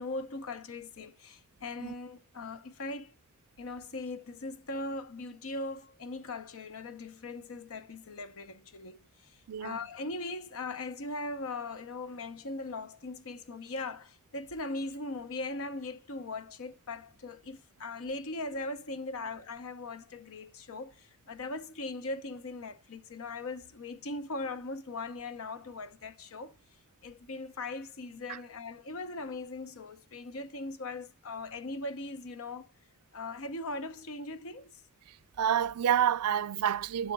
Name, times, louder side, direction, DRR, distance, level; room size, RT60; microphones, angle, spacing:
voice 1, 0.0-3.1 3.6-26.5 27.0-32.7 33.1-34.8, left 2 dB, 65° left, 0.8 m, -39 dB
voice 2, 9.5-9.8 28.3-28.4 35.4-37.1, right 9 dB, 85° right, 0.4 m, -28 dB
12.0 x 6.5 x 2.3 m
head